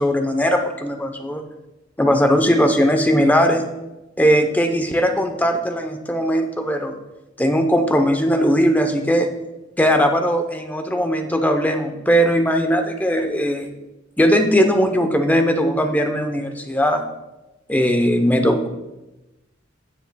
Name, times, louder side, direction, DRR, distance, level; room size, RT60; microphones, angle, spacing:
voice 1, 0.0-1.5 2.0-3.6 4.2-7.0 7.4-9.3 9.8-13.7 14.2-17.0 17.7-18.7, equal, 10° left, 5 dB, 0.7 m, -19 dB
16.5 x 6.8 x 2.2 m, 1.0 s
head